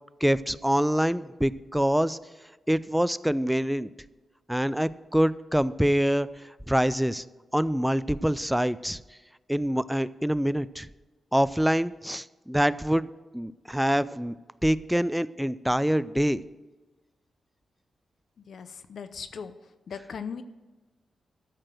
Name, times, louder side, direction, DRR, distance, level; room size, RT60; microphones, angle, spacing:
voice 1, 0.2-2.2 2.7-3.9 4.5-6.3 6.7-7.2 7.5-9.0 9.5-10.9 11.3-13.1 13.3-14.3 14.6-16.4, equal, 5° right, 16 dB, 0.3 m, -25 dB
voice 2, 18.5-19.5 19.9-20.4, left 6 dB, 65° left, 11 dB, 0.5 m, -38 dB
13.5 x 4.8 x 7.6 m, 1.2 s
wide cardioid pair, 120°, 0 cm